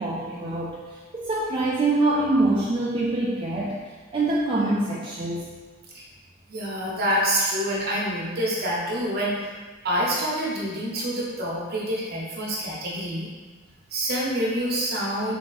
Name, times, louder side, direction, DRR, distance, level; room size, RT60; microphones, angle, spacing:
voice 1, 0.0-3.8 4.1-5.5, right 2 dB, 25° right, -6 dB, 0.4 m, -25 dB
voice 2, 6.5-9.3 9.8-13.3 13.9-15.3, equal, 50° right, -4 dB, 0.9 m, -26 dB
3.5 x 2.7 x 3.9 m, 1.4 s
head